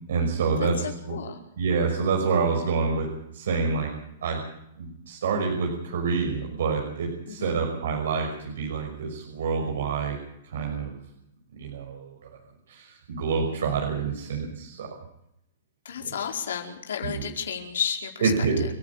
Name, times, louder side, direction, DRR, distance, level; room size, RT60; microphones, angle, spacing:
voice 1, 0.1-1.2 1.6-3.1 3.3-3.9 4.2-4.4 4.8-10.2 10.5-11.0 11.5-12.2 12.7-14.9 16.0-16.1 17.0-17.2 18.2-18.7, right 5 dB, 80° right, 1 dB, 5.7 m, -27 dB
voice 2, 0.6-1.4 7.3-7.6 15.8-18.3, left 8 dB, 85° left, 3 dB, 4.8 m, -32 dB
29.5 x 10.5 x 8.5 m, 0.76 s
hypercardioid pair, 160°, 0 cm